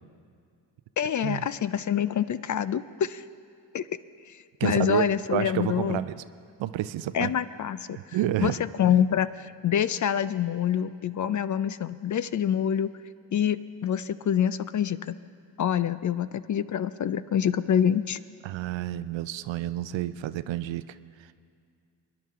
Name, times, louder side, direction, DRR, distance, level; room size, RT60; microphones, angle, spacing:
voice 1, 1.0-3.2 3.7-3.9 4.3-6.0 7.1-12.9 13.3-15.2 15.6-18.2, left 9 dB, 40° left, 15 dB, 0.5 m, -26 dB
voice 2, 4.6-6.2 6.6-7.3 7.9-8.5 8.8-9.0 18.4-21.3, right 13 dB, 65° right, 14 dB, 0.6 m, -30 dB
23.0 x 10.5 x 3.6 m, 2.3 s
supercardioid pair, 55°, 48 cm